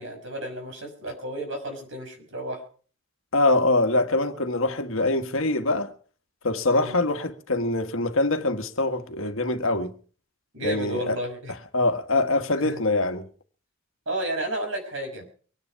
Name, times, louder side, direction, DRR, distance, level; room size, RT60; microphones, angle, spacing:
voice 1, 0.0-2.6 6.7-7.0 10.5-11.5 12.6-12.8 14.1-15.2, right 1 dB, 60° right, 5.7 m, -32 dB
voice 2, 3.3-5.9 6.4-9.9 10.6-11.2 11.7-13.3, left 2 dB, 70° left, 1.6 m, -24 dB
24.5 x 10.0 x 4.6 m
head